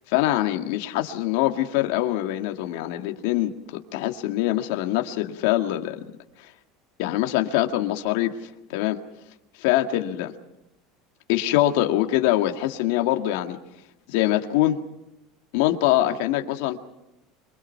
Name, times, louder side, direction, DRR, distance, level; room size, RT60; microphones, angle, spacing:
voice 1, 0.0-6.0 7.0-8.4 8.7-9.0 9.6-10.3 11.3-13.6 14.1-14.8 15.5-16.8, left 14 dB, 75° left, 5 dB, 1.9 m, -23 dB
27.0 x 23.5 x 5.8 m, 0.90 s
supercardioid pair, 115°, 0 cm